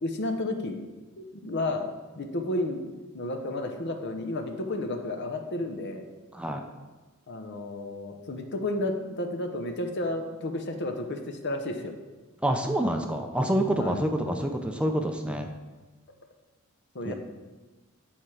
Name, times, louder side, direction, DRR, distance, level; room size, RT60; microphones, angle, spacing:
voice 1, 0.0-0.8 1.2-1.9 2.2-2.8 3.1-6.0 7.3-11.9 13.8-14.0 16.9-17.1, left 2 dB, 55° left, 5 dB, 0.8 m, -32 dB
voice 2, 6.3-6.6 12.4-15.5 17.0-17.1, right 1 dB, 5° right, 4 dB, 0.5 m, -27 dB
9.0 x 4.4 x 4.8 m, 1.2 s
head